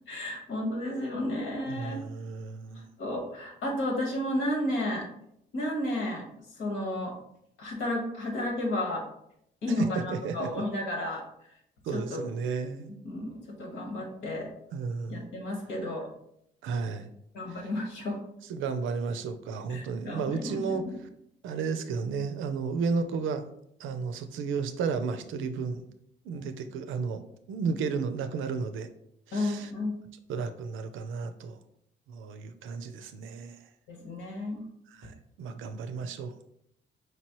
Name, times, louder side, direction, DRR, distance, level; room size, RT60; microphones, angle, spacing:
voice 1, 0.1-1.9 3.0-5.1 5.5-6.2 6.6-7.1 7.6-9.0 9.6-11.2 11.9-12.2 12.9-14.5 15.1-16.1 17.3-18.2 19.7-21.0 29.3-30.0 33.9-34.6, left 1 dB, 75° left, 1 dB, 1.4 m, -32 dB
voice 2, 1.7-2.9 9.7-10.5 11.8-12.9 14.7-15.2 16.6-17.1 17.5-17.7 18.5-21.1 21.4-23.4 23.8-25.8 26.2-28.9 29.3-29.7 30.3-31.6 32.1-33.6 34.9-36.3, right 5 dB, 80° right, 9 dB, 0.5 m, -33 dB
5.0 x 3.0 x 3.0 m, 0.76 s
cardioid pair, 90°, 20 cm